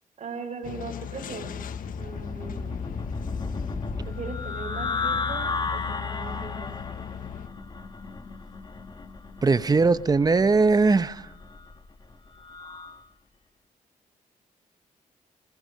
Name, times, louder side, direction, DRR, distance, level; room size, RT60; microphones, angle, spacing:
voice 1, 0.2-1.5 2.0-2.8 4.0-6.8, right 4 dB, 55° right, 1 dB, 4.8 m, -39 dB
sound 1, 0.6-7.5, left 8 dB, 80° left, 1.3 m, -37 dB
sound 2, 1.1-13.0, left 4 dB, 30° left, 2.1 m, -35 dB
voice 2, 9.4-11.3, right 4 dB, 30° right, 13 dB, 0.9 m, -20 dB
26.0 x 21.0 x 7.6 m, 0.73 s
cardioid pair, 105°, 14 cm